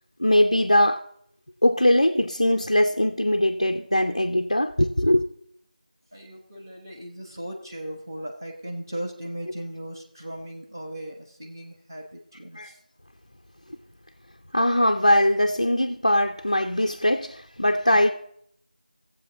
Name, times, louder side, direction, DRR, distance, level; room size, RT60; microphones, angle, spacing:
voice 1, 0.2-1.0 1.6-5.2 12.6-12.7 14.5-18.1, left 1 dB, 30° left, 0.4 m, -21 dB
voice 2, 6.1-12.8, right 1 dB, 25° right, 1.0 m, -37 dB
15.5 x 7.5 x 3.8 m
figure-of-eight pair, 175°, 5 cm